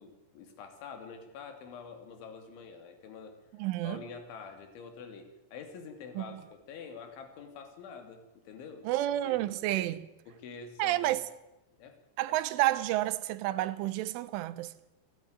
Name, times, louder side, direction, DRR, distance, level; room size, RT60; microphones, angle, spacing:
voice 1, 0.0-3.4 3.8-8.9 9.2-9.5 10.3-11.1 11.7-12.0 12.3-12.4, left 5 dB, 75° left, 5.0 m, -46 dB
voice 2, 3.6-4.0 6.2-6.4 8.8-10.1 10.8-11.2 12.2-14.7, right 15 dB, 90° right, 3.4 m, -30 dB
29.0 x 11.0 x 9.4 m
omnidirectional pair, 5.4 m